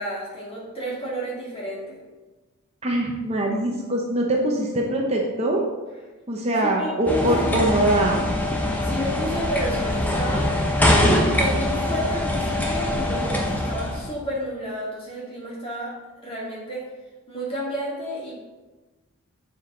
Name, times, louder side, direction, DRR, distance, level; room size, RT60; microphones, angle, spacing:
voice 1, 0.0-2.0 6.8-7.5 8.8-10.5 11.4-15.9 16.2-16.9 17.3-18.3, equal, 25° left, -5 dB, 2.3 m, -31 dB
voice 2, 2.8-5.6 6.3-8.3, right 1 dB, 30° right, -1 dB, 0.8 m, -23 dB
sound 1, 7.1-14.1, left 1 dB, 5° left, 0.8 m, -23 dB
7.0 x 6.8 x 3.9 m, 1.2 s
head